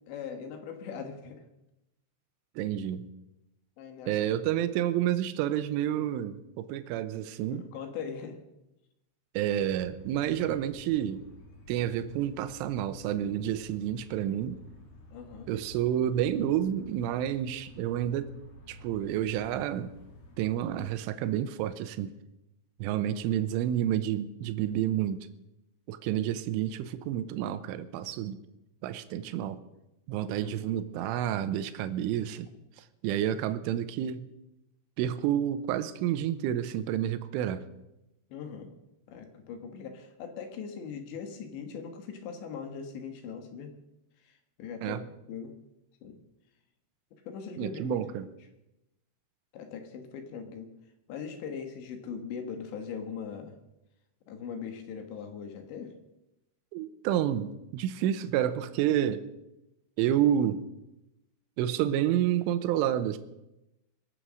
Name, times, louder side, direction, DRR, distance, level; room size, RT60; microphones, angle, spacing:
voice 1, 0.1-1.4 2.8-2.9 3.8-4.2 7.5-8.4 15.1-15.5 23.1-23.2 30.4-30.7 38.3-38.7 39.1-43.7 44.2-45.0 45.3-45.6 46.0-46.2 47.3-48.3 49.5-50.7 51.1-53.6 54.3-56.0, left 6 dB, 70° left, 6 dB, 3.5 m, -40 dB
voice 2, 2.6-3.1 4.1-7.6 9.3-11.2 11.7-14.6 15.5-18.4 18.7-19.9 20.4-22.1 22.8-25.3 25.9-28.4 28.8-29.6 30.1-32.5 33.0-34.3 35.0-37.7 44.8-45.0 47.6-48.3 56.7-59.2 60.0-60.6 61.6-63.2, right 11 dB, 85° right, 12 dB, 3.3 m, -29 dB
sound 1, 9.6-20.9, left 1 dB, 55° left, 1.6 m, -52 dB
23.0 x 7.9 x 6.3 m, 0.93 s
omnidirectional pair, 5.6 m